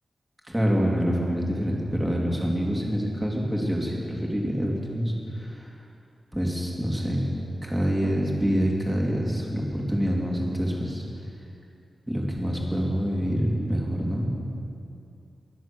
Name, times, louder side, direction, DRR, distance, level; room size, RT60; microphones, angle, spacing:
voice 1, 0.5-5.1 5.4-5.7 6.3-7.3 7.6-11.0 12.1-14.3, equal, 5° right, -2 dB, 2.8 m, -26 dB
22.5 x 7.8 x 6.8 m, 2.6 s
wide cardioid pair, 115°, 0 cm